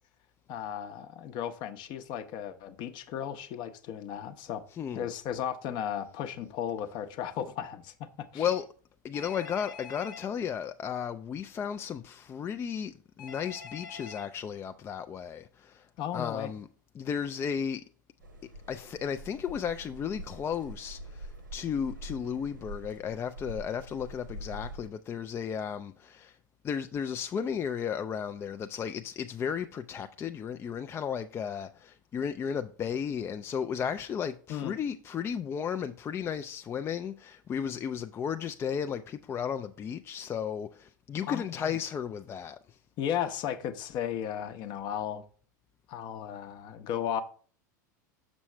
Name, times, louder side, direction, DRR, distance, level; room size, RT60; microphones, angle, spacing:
voice 1, 0.5-4.6 4.9-8.5 16.0-16.5 34.5-34.8 41.3-41.8 43.0-45.2 45.9-47.2, left 9 dB, 45° left, 0.7 m, -35 dB
voice 2, 4.7-5.1 8.3-8.6 9.0-15.9 16.1-16.7 16.9-17.8 18.7-26.4 26.6-42.8, left 7 dB, 25° left, 0.3 m, -34 dB
Telephone, 9.1-10.3 13.2-14.3, left 6 dB, 80° left, 1.0 m, -45 dB
sound 1, 18.2-24.9, right 1 dB, 90° right, 1.1 m, -45 dB
6.3 x 6.1 x 3.2 m
hypercardioid pair, 85°, 10 cm